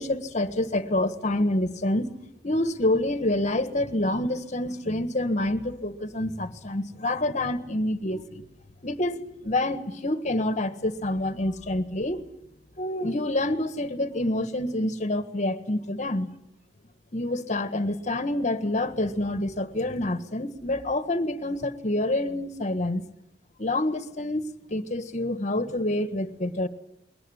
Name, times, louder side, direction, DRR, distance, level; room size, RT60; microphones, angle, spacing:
voice 1, 0.0-2.1 2.4-8.4 8.8-12.2 12.8-16.3 17.1-23.0 23.6-26.7, left 1 dB, 40° left, 1.6 m, -27 dB
22.0 x 18.5 x 9.9 m
head